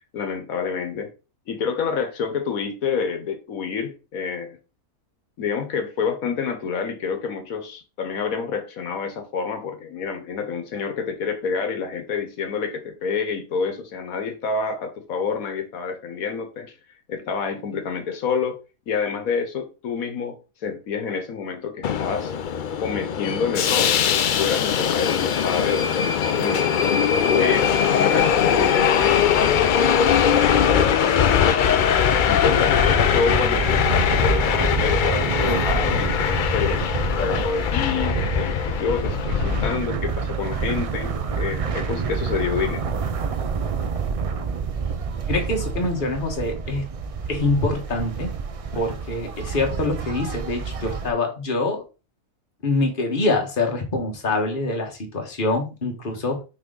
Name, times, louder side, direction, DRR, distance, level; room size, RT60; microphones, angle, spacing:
voice 1, 0.1-1.1 1.5-4.6 5.4-16.7 17.1-18.6 18.9-22.3 22.8-29.6 30.1-31.7 32.3-36.9 37.2-42.8, left 5 dB, 85° left, 1.4 m, -28 dB
Subway metro underground, 21.8-39.7, left 8 dB, 70° left, 0.4 m, -21 dB
sound 1, 31.7-51.1, right 5 dB, 60° right, 0.3 m, -28 dB
voice 2, 45.3-46.9 47.3-48.3 48.7-51.8 52.6-56.4, left 2 dB, 40° left, 1.5 m, -25 dB
6.0 x 4.4 x 3.8 m
omnidirectional pair, 1.4 m